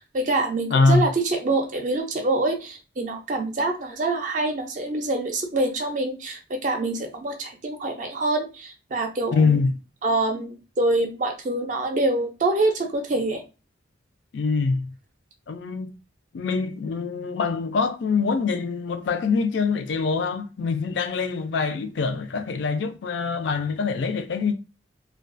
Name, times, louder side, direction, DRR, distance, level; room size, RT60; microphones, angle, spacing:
voice 1, 0.1-9.6 10.0-13.4, right 2 dB, 40° right, 0.4 m, -25 dB
voice 2, 0.7-1.1 9.3-9.7 14.3-14.9 15.5-15.9 16.3-24.5, left 4 dB, 70° left, 0.4 m, -24 dB
2.3 x 2.2 x 2.5 m
head